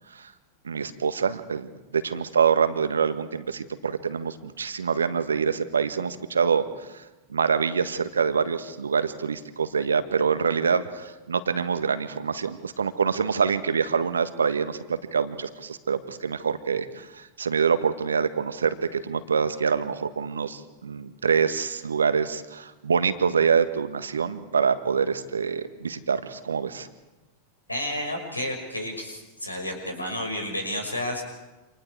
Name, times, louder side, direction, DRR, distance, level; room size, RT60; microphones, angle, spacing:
voice 1, 0.6-6.6 7.3-26.9, right 6 dB, 70° right, 11 dB, 1.5 m, -25 dB
voice 2, 27.7-31.2, left 1 dB, 85° left, 3 dB, 5.9 m, -31 dB
28.5 x 27.0 x 4.8 m, 1.1 s
figure-of-eight pair, 90°, 0 cm